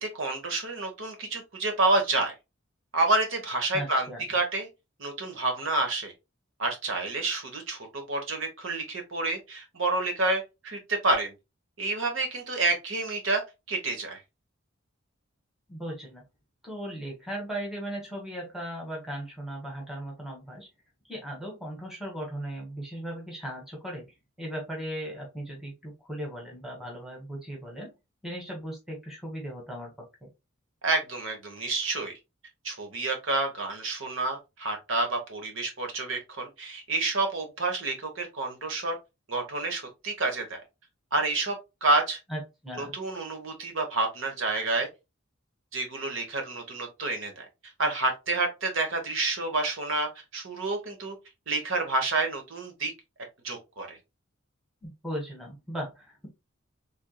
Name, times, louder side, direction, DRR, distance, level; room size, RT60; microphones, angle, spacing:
voice 1, 0.0-2.3 2.9-4.7 5.0-6.1 6.6-11.3 11.8-13.4 13.7-14.2 30.8-32.1 32.6-39.0 39.3-40.6 41.1-41.6 41.8-42.2 42.8-44.9 45.7-47.4 47.8-51.2 51.5-52.9 53.4-54.0, right 2 dB, 70° right, 1.2 m, -29 dB
voice 2, 3.7-4.2 15.7-16.2 16.6-20.7 21.0-24.0 24.4-27.9 28.2-29.9 30.2-30.3 42.3-42.9 54.8-56.3, right 1 dB, ahead, 1.2 m, -37 dB
3.5 x 3.4 x 2.3 m
head